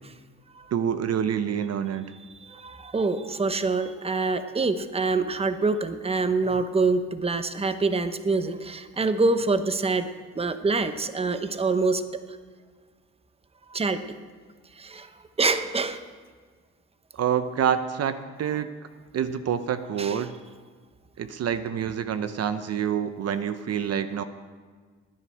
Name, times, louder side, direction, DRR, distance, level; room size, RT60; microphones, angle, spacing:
voice 1, 0.7-2.1 17.1-18.7 19.1-20.3 21.2-24.2, right 8 dB, 55° right, 11 dB, 0.7 m, -27 dB
voice 2, 2.5-10.1 10.4-12.0 13.7-14.0 14.8-15.1 15.4-16.0 20.0-20.2, right 3 dB, 20° right, 10 dB, 0.9 m, -25 dB
15.0 x 10.0 x 6.4 m, 1.5 s
cardioid pair, 90°, 30 cm